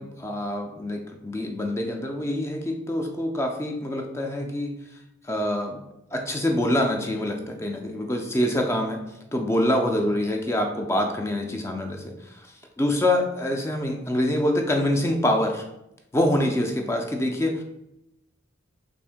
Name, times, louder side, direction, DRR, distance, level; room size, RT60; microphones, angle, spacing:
voice 1, 0.0-4.7 5.3-5.8 6.1-9.0 9.3-12.5 12.8-15.6 16.1-17.6, left 1 dB, 15° left, 3 dB, 0.3 m, -25 dB
3.6 x 2.5 x 3.5 m, 0.87 s
head